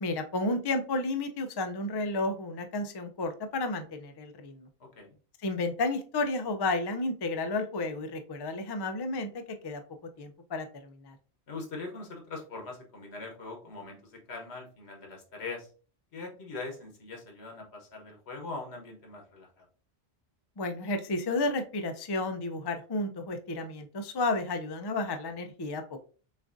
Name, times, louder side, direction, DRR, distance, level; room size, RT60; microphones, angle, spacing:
voice 1, 0.0-4.7 5.4-9.3 9.6-9.8 10.2-11.2 20.6-26.0, left 2 dB, 40° left, 6 dB, 0.3 m, -32 dB
voice 2, 4.8-5.1 11.5-15.7 16.1-19.6, left 3 dB, 85° left, 1 dB, 1.4 m, -42 dB
6.3 x 2.4 x 2.5 m, 0.38 s
omnidirectional pair, 1.1 m